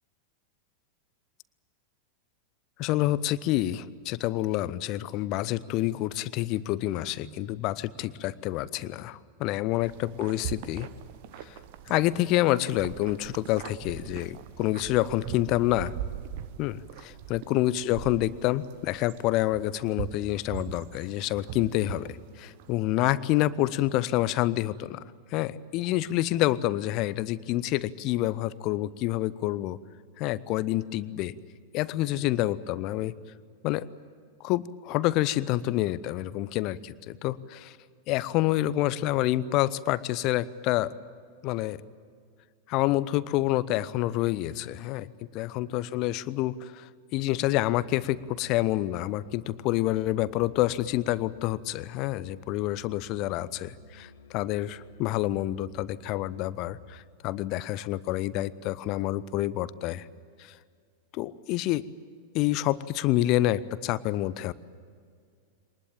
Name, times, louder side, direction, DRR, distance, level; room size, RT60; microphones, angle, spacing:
voice 1, 2.8-10.9 11.4-11.6 11.9-15.9 16.6-25.0 25.3-29.8 30.2-31.4 31.7-33.1 33.6-33.8 34.4-37.8 38.1-40.9 41.4-41.8 42.7-45.1 45.3-60.1 60.4-60.6 61.1-61.9 62.3-64.5, left 15 dB, 40° left, 19 dB, 0.7 m, -28 dB
sound 1, 7.2-10.4, right 3 dB, 15° left, 3.1 m, -57 dB
sound 2, 9.8-22.8, right 10 dB, 50° right, 1.1 m, -41 dB
Musical instrument, 47.3-57.2, equal, 65° left, 1.8 m, -53 dB
23.5 x 19.5 x 8.9 m, 2.1 s
figure-of-eight pair, 90°, 0 cm